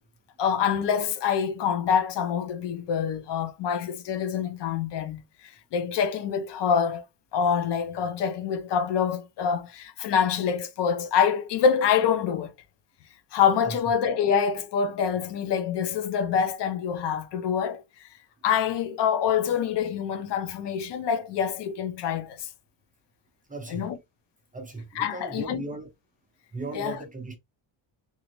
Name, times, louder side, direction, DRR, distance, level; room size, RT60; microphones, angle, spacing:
voice 1, 0.4-5.2 5.7-7.0 7.3-12.5 13.3-17.8 18.4-22.5 23.7-24.0 24.9-25.6 26.7-27.0, left 7 dB, 65° left, 0.6 m, -26 dB
voice 2, 23.5-23.9 24.5-25.9 26.5-27.4, right 3 dB, 20° right, 0.4 m, -37 dB
3.0 x 2.4 x 2.9 m
cardioid pair, 160°, 46 cm